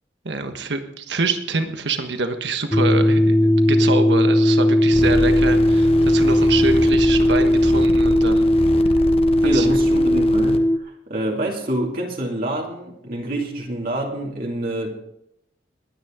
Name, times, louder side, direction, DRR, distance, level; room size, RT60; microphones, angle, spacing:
voice 1, 0.2-8.5 9.5-9.7, right 3 dB, 80° right, 7 dB, 1.4 m, -26 dB
sound 1, 2.7-10.8, left 1 dB, 10° left, 0.4 m, -17 dB
sound 2, 4.9-10.6, left 1 dB, 35° left, 1.1 m, -29 dB
voice 2, 9.4-14.9, right 1 dB, 55° right, -1 dB, 2.5 m, -26 dB
22.0 x 9.6 x 3.7 m, 0.78 s
head